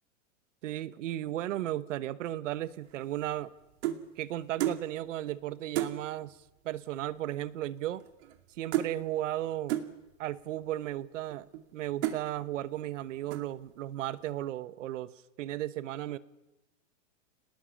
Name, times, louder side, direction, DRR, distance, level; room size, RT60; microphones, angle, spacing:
voice 1, 0.6-3.5 4.2-6.4 6.6-8.0 8.6-9.8 10.2-11.5 11.7-15.1 15.4-16.2, right 13 dB, 75° right, 16 dB, 1.2 m, -35 dB
sound 1, 2.9-4.1 4.6-4.9 5.3-5.4 5.7-6.0 6.9-7.0 7.2-7.5 7.8-8.5 8.7-9.0 9.7-9.9 10.6-10.7 11.3-11.7 12.0-12.3 12.8-13.0 13.3-13.7, right 13 dB, 60° right, 2.4 m, -33 dB
27.0 x 19.5 x 7.3 m, 0.98 s
supercardioid pair, 145°, 38 cm